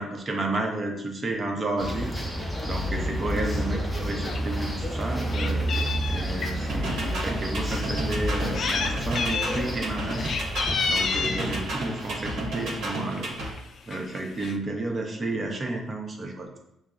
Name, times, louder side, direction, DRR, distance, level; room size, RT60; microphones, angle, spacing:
voice 1, 0.0-13.3 13.9-16.6, right 2 dB, 35° right, 2 dB, 0.7 m, -32 dB
sound 1, 1.8-12.9, equal, ahead, 0.6 m, -31 dB
Meow, 4.2-4.4 4.8-6.5 7.3-7.4 8.3-8.9 9.1-9.6 10.1-11.5 12.5-12.8 13.2-13.3 13.5-13.6 13.9-14.5, left 5 dB, 55° left, 0.3 m, -30 dB
sound 2, 6.7-13.5, right 1 dB, 85° right, 0.9 m, -33 dB
5.7 x 2.0 x 2.4 m, 0.83 s
cardioid pair, 90°, 0 cm